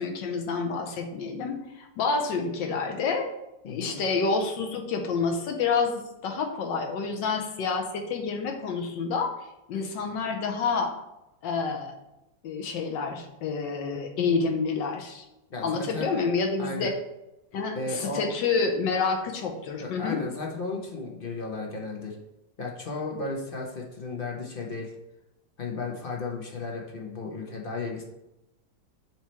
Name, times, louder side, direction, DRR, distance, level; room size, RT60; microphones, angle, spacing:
voice 1, 0.0-3.3 3.6-9.4 9.7-10.9 11.4-11.9 12.4-15.2 15.6-16.9 17.5-20.2, left 4 dB, 80° left, 3 dB, 1.5 m, -28 dB
voice 2, 3.6-4.0 15.5-16.2 16.6-16.9 17.7-18.3 19.8-22.2 22.6-24.9 25.6-28.0, left 3 dB, 45° left, 0 dB, 0.7 m, -34 dB
7.1 x 3.1 x 4.3 m, 0.92 s
omnidirectional pair, 2.0 m